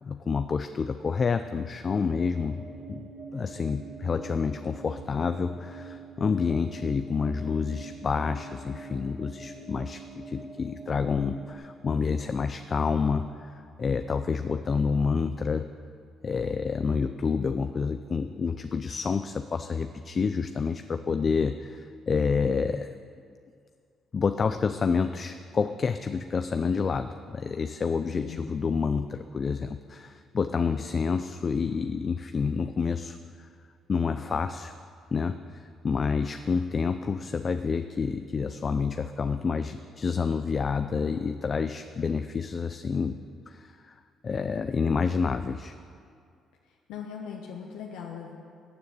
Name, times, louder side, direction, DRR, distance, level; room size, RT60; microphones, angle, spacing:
voice 1, 0.0-15.7 16.2-22.9 24.1-33.5 33.9-34.7 35.1-43.2 43.5-43.9 44.2-45.7, left 5 dB, 40° left, 9 dB, 0.5 m, -28 dB
sound 1, 2.1-11.5, right 2 dB, 40° right, 3.9 m, -44 dB
voice 2, 46.9-48.4, left 7 dB, 85° left, -1 dB, 1.2 m, -39 dB
14.5 x 7.0 x 9.6 m, 2.3 s
supercardioid pair, 70°, 0 cm